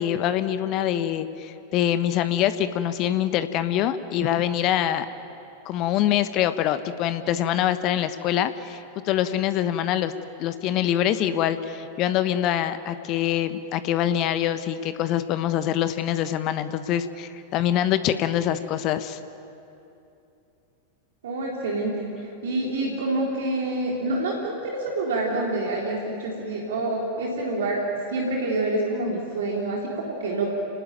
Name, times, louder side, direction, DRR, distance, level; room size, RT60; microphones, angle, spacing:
voice 1, 0.0-5.1 5.6-10.1 10.4-19.2, left 11 dB, 40° left, 11 dB, 1.2 m, -24 dB
voice 2, 21.2-27.8 28.1-30.5, right 2 dB, 60° right, -2 dB, 3.7 m, -27 dB
29.5 x 19.5 x 9.3 m, 2.8 s
figure-of-eight pair, 90°, 0 cm